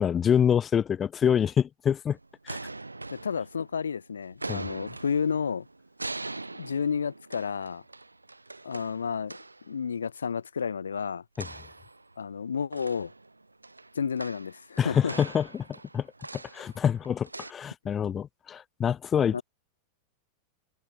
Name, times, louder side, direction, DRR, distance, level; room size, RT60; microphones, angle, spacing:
voice 1, 0.0-2.2 2.4-2.6 4.5-4.7 11.4-11.5 14.8-16.1 16.3-19.4, left 8 dB, 25° left, 0.8 m, -26 dB
sound 1, 2.1-3.9 4.3-9.7 11.3-12.4 12.7-17.5, right 2 dB, 80° right, 0.7 m, -42 dB
voice 2, 3.1-5.7 6.5-7.8 8.6-9.4 9.6-11.2 12.2-13.1 13.9-15.1 19.3-19.4, left 6 dB, 70° left, 1.2 m, -31 dB
figure-of-eight pair, 90°, 0 cm